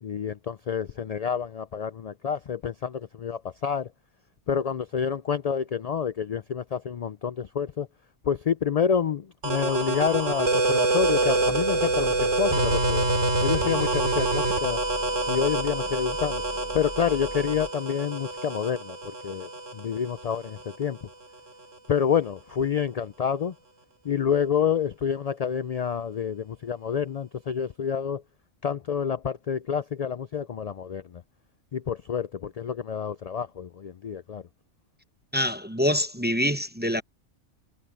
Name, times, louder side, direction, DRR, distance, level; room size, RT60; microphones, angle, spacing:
voice 1, 0.0-3.9 4.5-7.9 8.2-13.0 13.4-14.8 15.3-16.4 16.7-21.0 21.9-23.5 24.0-28.2 28.6-31.2 31.7-34.4, left 7 dB, 60° left, 0.4 m, -28 dB
sound 1, 9.4-20.8, right 2 dB, 75° right, 3.2 m, -26 dB
sound 2, 11.0-17.7, right 1 dB, 25° right, 5.5 m, -42 dB
voice 2, 35.3-37.0, left 1 dB, 10° right, 0.7 m, -25 dB
omnidirectional pair, 1.3 m